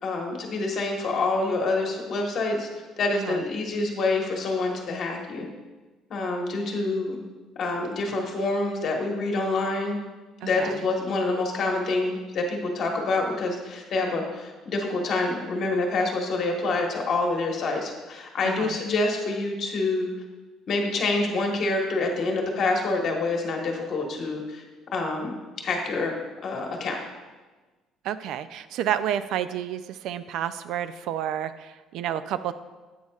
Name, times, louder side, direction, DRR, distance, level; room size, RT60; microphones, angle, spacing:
voice 1, 0.0-2.7 3.0-5.5 6.1-7.2 7.6-10.0 10.4-20.1 20.7-24.6 24.9-25.3 25.6-26.1 26.4-27.0, left 3 dB, 50° left, 1 dB, 1.4 m, -27 dB
voice 2, 10.4-10.8 18.4-18.8 28.0-32.5, right 10 dB, 70° right, 13 dB, 0.4 m, -30 dB
9.4 x 8.6 x 2.4 m, 1.3 s
cardioid pair, 130°, 0 cm